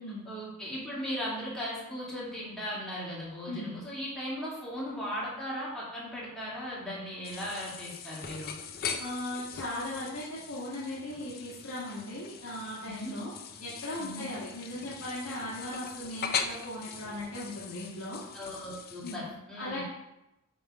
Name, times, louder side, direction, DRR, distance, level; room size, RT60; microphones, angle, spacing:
voice 1, 0.3-8.6 12.8-13.2 14.0-14.3 18.3-19.8, equal, 5° left, -7 dB, 2.0 m, -37 dB
sound 1, 7.2-19.2, left 6 dB, 45° left, 0.5 m, -40 dB
voice 2, 9.0-13.3 13.6-18.2 19.0-19.3 19.6-19.8, left 1 dB, 65° left, -8 dB, 1.7 m, -38 dB
9.2 x 3.4 x 4.7 m, 0.93 s
head